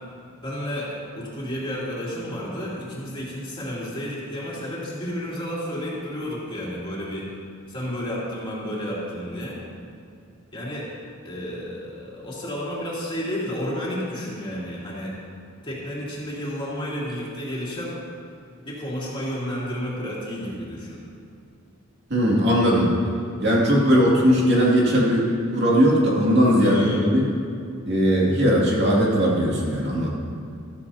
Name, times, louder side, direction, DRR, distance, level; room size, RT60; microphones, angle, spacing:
voice 1, 0.4-7.3 7.7-9.6 10.5-10.9 11.2-15.1 15.6-18.0 18.6-21.0 26.6-27.1, equal, 25° left, -6 dB, 2.7 m, -31 dB
voice 2, 22.1-22.9 23.4-25.3 25.5-27.2 27.9-30.1, equal, 55° right, -4 dB, 2.4 m, -19 dB
13.5 x 13.5 x 2.8 m, 2.4 s
head